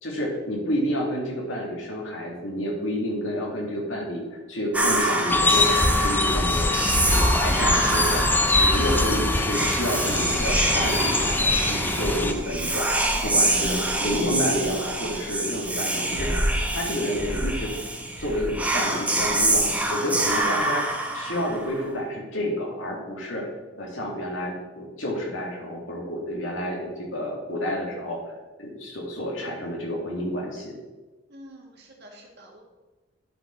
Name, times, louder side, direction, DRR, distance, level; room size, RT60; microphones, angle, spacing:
voice 1, 0.0-6.7 6.9-8.2 8.5-16.3 16.7-17.7 18.2-23.5 23.7-28.2 28.6-30.7, equal, 85° left, -1 dB, 2.2 m, -29 dB
Whispering, 4.7-21.9, right 1 dB, 10° right, 0.8 m, -26 dB
sound 1, 5.3-12.3, left 2 dB, 10° left, 0.4 m, -23 dB
voice 2, 31.3-32.6, equal, 60° right, 1 dB, 1.6 m, -47 dB
10.5 x 4.7 x 4.4 m, 1.2 s
head